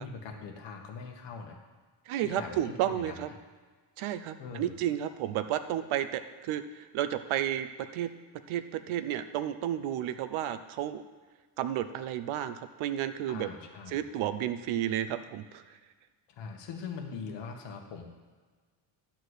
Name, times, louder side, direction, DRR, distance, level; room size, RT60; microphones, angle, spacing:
voice 1, 0.0-1.6 2.2-3.2 4.4-4.8 13.3-14.0 16.3-18.1, left 5 dB, 60° left, 3 dB, 1.5 m, -42 dB
voice 2, 2.1-3.3 4.0-8.1 8.5-11.0 11.6-13.5 13.9-15.6, right 11 dB, 80° right, 11 dB, 0.8 m, -32 dB
11.5 x 4.4 x 8.0 m, 1.5 s
cardioid pair, 175°, 48 cm